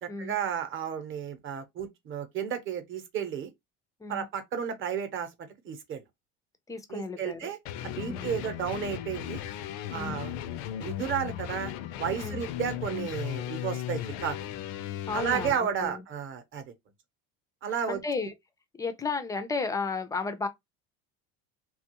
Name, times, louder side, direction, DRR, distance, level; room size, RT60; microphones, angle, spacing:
voice 1, 0.0-3.5 4.1-6.0 6.9-7.6 7.8-9.4 9.9-10.3 10.8-14.5 15.1-16.6 17.6-18.3, right 8 dB, 35° right, 0.8 m, -33 dB
voice 2, 6.7-7.5 8.1-8.3 9.9-10.2 12.2-12.4 15.1-16.0 17.9-18.3 18.8-20.5, left 4 dB, 10° left, 0.3 m, -33 dB
sound 1, 7.7-15.6, left 11 dB, 90° left, 0.5 m, -36 dB
2.9 x 2.3 x 2.8 m
cardioid pair, 145°, 33 cm